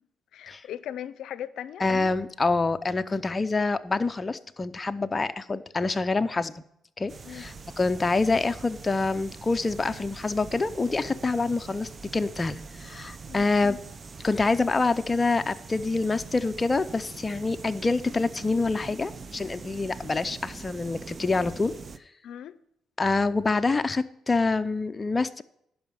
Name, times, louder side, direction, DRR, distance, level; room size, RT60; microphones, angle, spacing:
voice 1, 0.3-1.8 7.2-7.4 13.3-13.5 22.2-22.6, left 10 dB, 75° left, 16 dB, 0.5 m, -38 dB
voice 2, 1.8-6.6 7.0-13.8 14.2-21.7 23.0-25.4, left 3 dB, 25° left, 10 dB, 0.6 m, -26 dB
sound 1, 7.1-22.0, right 4 dB, 35° right, 0.5 m, -43 dB
11.0 x 5.6 x 7.2 m, 0.72 s
cardioid pair, 90°, 0 cm